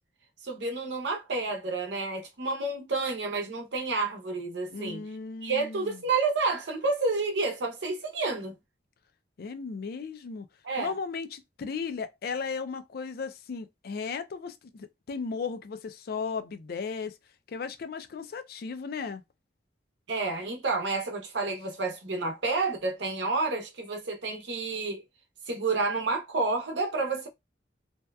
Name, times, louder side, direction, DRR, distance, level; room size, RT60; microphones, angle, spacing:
voice 1, 0.4-5.0 5.4-8.6 10.6-10.9 20.1-25.0 25.5-27.3, right 3 dB, 80° right, 0.7 m, -30 dB
voice 2, 4.7-6.0 9.4-10.5 10.8-17.2 17.5-19.2, left 5 dB, 60° left, 0.4 m, -36 dB
2.7 x 2.2 x 2.2 m
head